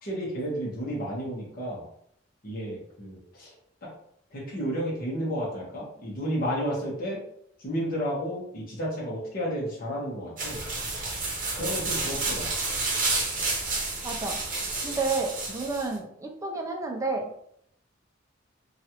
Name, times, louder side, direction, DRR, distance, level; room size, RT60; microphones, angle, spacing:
voice 1, 0.0-1.8 2.4-3.5 3.8-3.9 4.3-7.2 7.6-10.6 11.5-12.5, equal, 45° left, -5 dB, 0.9 m, -32 dB
sound 1, 10.4-15.9, right 3 dB, 40° right, 0.8 m, -30 dB
voice 2, 14.0-14.4 14.8-17.3, right 3 dB, 15° right, 1 dB, 0.4 m, -30 dB
3.0 x 2.4 x 2.9 m, 0.71 s
head